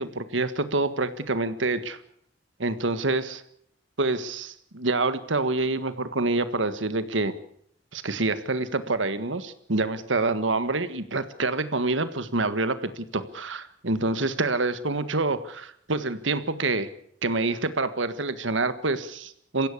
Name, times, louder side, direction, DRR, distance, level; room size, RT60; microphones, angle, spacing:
voice 1, 0.0-2.0 2.6-3.4 4.0-7.3 7.9-16.9 17.2-19.7, right 3 dB, 75° right, 12 dB, 1.6 m, -27 dB
24.0 x 16.0 x 8.5 m, 0.69 s
head